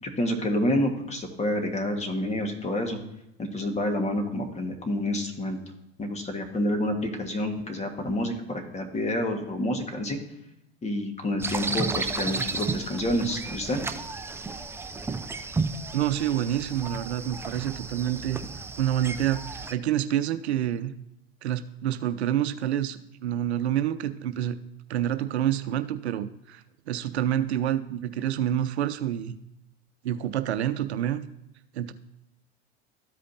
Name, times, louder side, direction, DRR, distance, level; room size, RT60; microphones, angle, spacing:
voice 1, 0.0-3.0 3.4-5.6 6.0-10.2 10.8-13.8, left 1 dB, 20° left, 4 dB, 1.6 m, -28 dB
sound 1, 11.4-19.7, right 4 dB, 10° right, 0.4 m, -33 dB
voice 2, 15.9-18.4 18.8-20.9 21.4-24.6 24.9-29.4 30.0-31.2 31.7-31.9, right 11 dB, 90° right, 11 dB, 0.6 m, -28 dB
13.5 x 5.1 x 2.8 m, 0.89 s
hypercardioid pair, 100°, 32 cm